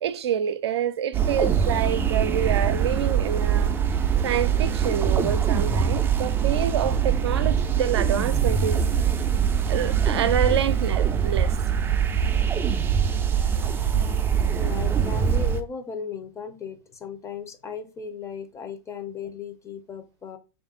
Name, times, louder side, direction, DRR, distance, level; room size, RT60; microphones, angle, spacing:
voice 1, 0.0-3.8 4.2-8.9 9.6-11.6 13.3-14.0, right 9 dB, 80° right, 0.4 m, -27 dB
sound 1, 1.1-15.6, right 7 dB, 15° right, 0.4 m, -23 dB
voice 2, 14.5-20.4, left 6 dB, 20° left, 0.7 m, -36 dB
3.5 x 2.6 x 3.6 m
hypercardioid pair, 115°, 14 cm